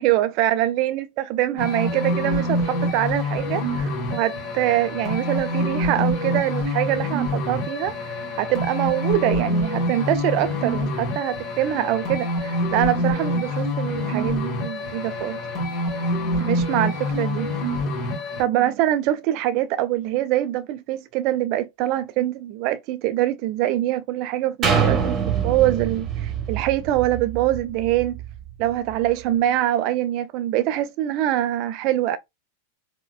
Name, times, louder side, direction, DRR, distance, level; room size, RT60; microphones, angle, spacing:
voice 1, 0.0-15.4 16.3-17.5 18.4-25.2 25.4-28.2 28.6-32.2, right 13 dB, 40° right, 0.3 m, -24 dB
sound 1, 1.6-18.4, left 1 dB, 40° left, 1.8 m, -26 dB
sound 2, 24.6-28.4 28.9-29.0, right 7 dB, 25° right, 1.0 m, -25 dB
4.6 x 2.2 x 2.3 m
figure-of-eight pair, 90°, 0 cm